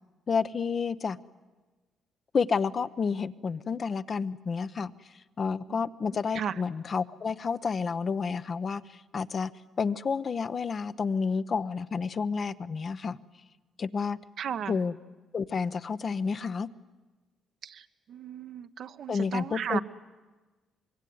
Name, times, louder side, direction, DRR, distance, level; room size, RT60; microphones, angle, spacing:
voice 1, 0.3-1.2 2.3-4.9 5.4-8.8 9.1-9.5 9.8-13.2 13.8-14.2 14.7-14.9 15.3-16.7 19.1-19.8, left 5 dB, 45° left, 12 dB, 0.8 m, -30 dB
voice 2, 14.4-14.8 17.6-17.8 18.1-19.8, right 8 dB, 65° right, 9 dB, 1.1 m, -35 dB
25.5 x 21.5 x 9.4 m, 1.2 s
cardioid pair, 90°, 0 cm